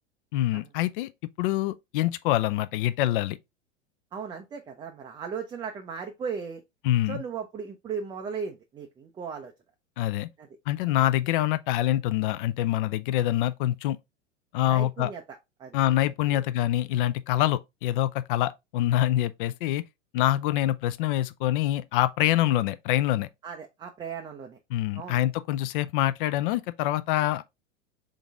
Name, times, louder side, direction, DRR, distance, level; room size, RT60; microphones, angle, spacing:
voice 1, 0.3-1.1 1.4-3.4 6.8-7.2 10.0-10.3 10.7-14.0 14.5-15.1 15.7-19.8 20.1-23.3 24.7-27.4, left 14 dB, 45° left, 0.4 m, -25 dB
voice 2, 4.1-6.6 7.1-9.5 10.4-10.5 14.7-15.8 16.3-16.4 23.4-24.6 24.9-25.2, right 6 dB, 10° right, 0.4 m, -37 dB
3.9 x 3.8 x 3.4 m
figure-of-eight pair, 90°, 37 cm